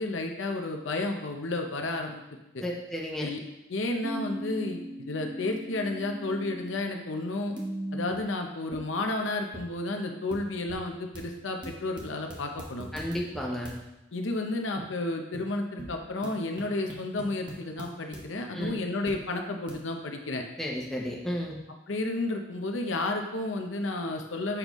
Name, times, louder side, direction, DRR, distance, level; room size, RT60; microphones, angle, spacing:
voice 1, 0.0-2.6 3.2-3.4 3.7-7.5 7.9-12.9 14.1-20.4 21.9-24.6, left 2 dB, 85° left, 4 dB, 0.7 m, -32 dB
voice 2, 2.6-3.3 12.9-13.7 18.5-18.8 20.6-21.6, equal, ahead, -2 dB, 0.7 m, -32 dB
sound 1, 4.0-7.2 7.6-8.2 8.7-8.8 9.5-9.6 10.3-10.4 10.7-10.9 11.1-13.7 14.8-14.9 15.3-15.4 15.8-16.3 16.6-18.2 18.6-18.7 19.1-19.2 19.7-19.8, right 1 dB, 25° right, 1.1 m, -39 dB
7.0 x 5.2 x 3.1 m, 0.94 s
head